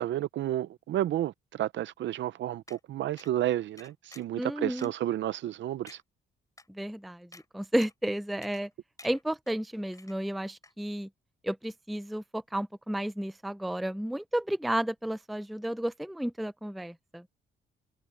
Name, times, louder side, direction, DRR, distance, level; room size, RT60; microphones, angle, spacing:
voice 1, 0.0-6.0, right 13 dB, 70° right, 0.6 m, -31 dB
sound 1, 2.7-2.8 3.2-3.3 3.8-4.4 4.8-4.9 5.4-5.5 5.9-6.0 6.6-6.7 7.3-7.5 7.8-8.1 8.4-8.7 9.0-9.6 9.9-10.4 10.6-10.7, left 2 dB, 15° left, 5.1 m, -52 dB
voice 2, 4.4-4.9 6.7-8.7 9.0-11.1 11.4-17.2, right 1 dB, ahead, 0.5 m, -32 dB
cardioid pair, 90°, 20 cm